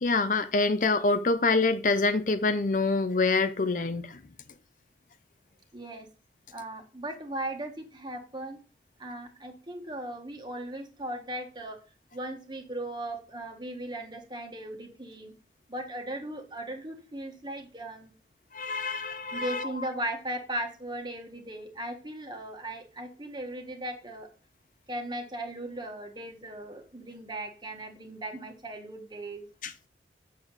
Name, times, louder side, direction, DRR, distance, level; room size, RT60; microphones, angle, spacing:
voice 1, 0.0-4.2 18.5-19.7 29.6-29.7, left 3 dB, 45° left, 0.6 m, -26 dB
voice 2, 5.7-6.1 6.5-8.6 9.0-11.8 12.1-15.3 15.7-18.1 19.3-24.3 24.9-29.4, right 1 dB, 25° right, 1.5 m, -37 dB
7.9 x 6.9 x 4.0 m
head